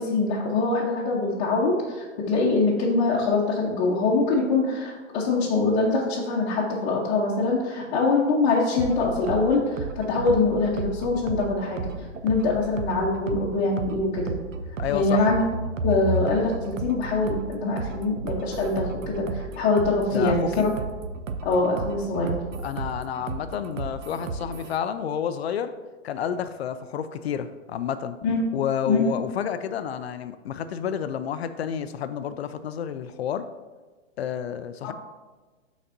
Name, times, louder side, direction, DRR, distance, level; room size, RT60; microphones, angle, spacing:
voice 1, 0.0-11.9 12.2-14.3 14.9-15.4 15.8-20.7 21.4-22.3 28.2-28.5 28.9-29.1 34.8-34.9, left 3 dB, 30° left, -6 dB, 1.0 m, -24 dB
sound 1, 8.8-24.8, right 3 dB, 80° right, 0.7 m, -33 dB
voice 2, 14.8-15.3 20.1-20.7 22.6-25.7 26.0-28.2 28.5-33.5 34.2-34.9, left 8 dB, 55° left, 11 dB, 0.5 m, -30 dB
12.0 x 4.1 x 2.7 m, 1.3 s
hypercardioid pair, 140°, 38 cm